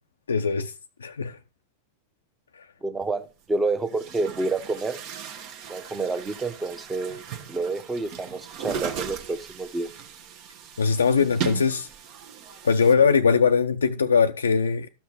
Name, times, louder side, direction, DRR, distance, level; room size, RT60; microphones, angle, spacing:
voice 1, 0.3-0.7 1.0-1.4 2.5-2.7 10.8-11.9 12.6-14.9, left 5 dB, 70° left, 0.5 m, -21 dB
voice 2, 2.8-5.0 5.7-7.2 7.5-9.9, right 3 dB, 10° right, 1.1 m, -28 dB
Chatter / Gurgling / Tap, 3.0-3.1 3.8-12.9, right 8 dB, 40° right, 1.1 m, -37 dB
13.0 x 5.9 x 4.9 m
figure-of-eight pair, 90°, 0 cm